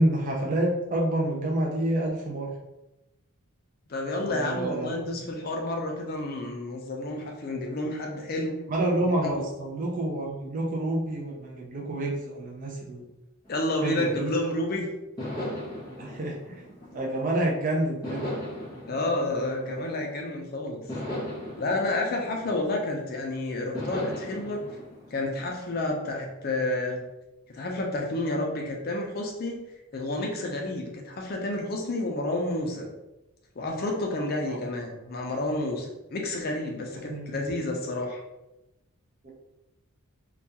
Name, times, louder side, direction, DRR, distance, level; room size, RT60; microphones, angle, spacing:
voice 1, 0.0-2.5 4.3-4.9 8.7-13.0 13.8-14.3 16.0-16.6 16.9-18.3 34.4-34.6 37.1-37.3, right 1 dB, 35° right, -1 dB, 0.3 m, -28 dB
voice 2, 3.9-8.6 9.0-9.4 13.5-14.9 18.9-20.8 21.6-24.6 25.1-27.0 27.5-29.6 29.9-32.9 33.6-38.2, left 2 dB, 40° left, 1 dB, 0.4 m, -30 dB
sound 1, 13.4-14.6 15.2-17.4 18.0-20.3 20.9-23.1 23.7-25.9, left 1 dB, 15° left, 0.8 m, -38 dB
2.3 x 2.2 x 2.7 m, 0.97 s
head